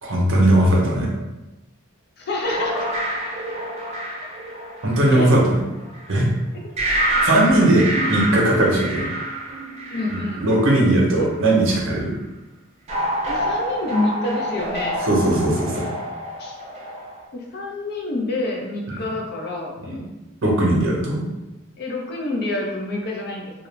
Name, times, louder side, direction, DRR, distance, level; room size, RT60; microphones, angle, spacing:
voice 1, 0.0-1.1 4.8-5.4 6.1-6.3 7.2-9.1 10.1-12.1 15.1-15.9 19.8-20.0 20.4-21.2, right 1 dB, 65° right, -2 dB, 0.7 m, -18 dB
voice 2, 2.2-2.9 5.1-5.3 9.9-10.5 13.2-15.0 16.4-16.6 17.3-20.0 21.8-23.7, left 2 dB, 55° left, 0 dB, 0.5 m, -27 dB
sound 1, 2.4-6.1 6.8-11.2 12.9-17.2, right 1 dB, 35° right, 0.4 m, -27 dB
2.4 x 2.0 x 3.0 m, 1.0 s
head